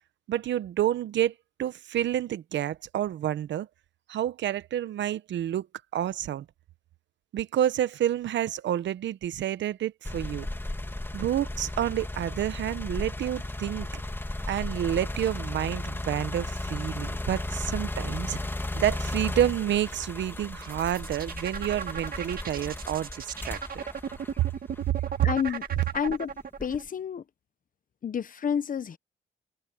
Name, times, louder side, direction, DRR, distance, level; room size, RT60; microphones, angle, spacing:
voice 1, 0.3-1.3 1.6-3.7 4.1-5.7 5.9-6.4 7.3-10.5 11.1-14.0 14.5-23.8 24.4-24.5 25.2-25.3, right 11 dB, 70° right, 0.9 m, -29 dB
sound 1, 10.0-25.1 25.7-26.9, left 1 dB, 10° left, 2.2 m, -35 dB
sound 2, 20.6-26.8, right 7 dB, 45° right, 2.1 m, -36 dB
voice 2, 25.2-25.6 25.9-27.2 28.0-29.0, left 7 dB, 45° left, 1.0 m, -30 dB
cardioid pair, 90°, 20 cm